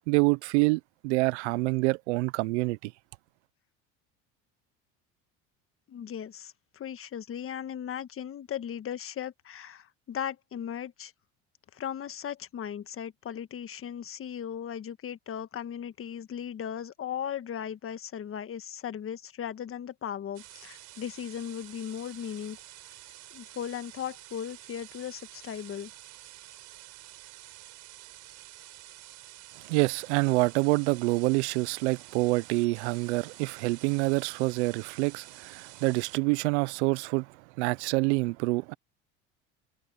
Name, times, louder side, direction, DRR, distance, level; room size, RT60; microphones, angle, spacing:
voice 1, 0.1-2.9 29.6-38.7, right 25 dB, 85° right, 0.8 m, -27 dB
voice 2, 5.9-11.1 11.7-22.6 23.3-25.9, left 9 dB, 40° left, 1.6 m, -37 dB
sound 1, 20.3-36.2, right 16 dB, 60° right, 4.2 m, -49 dB
supercardioid pair, 90°, 34 cm